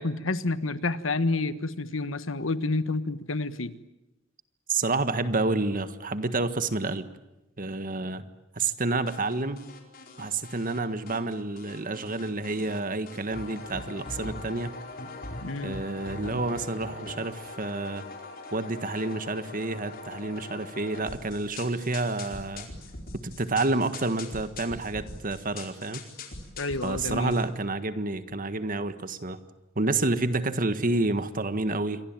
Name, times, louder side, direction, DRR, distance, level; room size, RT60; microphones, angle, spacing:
voice 1, 0.0-3.7 15.4-15.8 26.6-27.4, left 3 dB, 75° left, 13 dB, 1.4 m, -29 dB
voice 2, 4.7-7.1 7.6-8.2 8.5-9.6 10.2-14.8 15.6-18.0 18.5-22.7 23.2-26.0 26.8-29.4 29.7-32.0, right 2 dB, 45° right, 11 dB, 1.6 m, -29 dB
sound 1, 9.1-10.8 11.1-12.8 13.1-27.4, left 2 dB, 50° left, 4.6 m, -42 dB
27.5 x 24.0 x 9.0 m, 0.97 s
head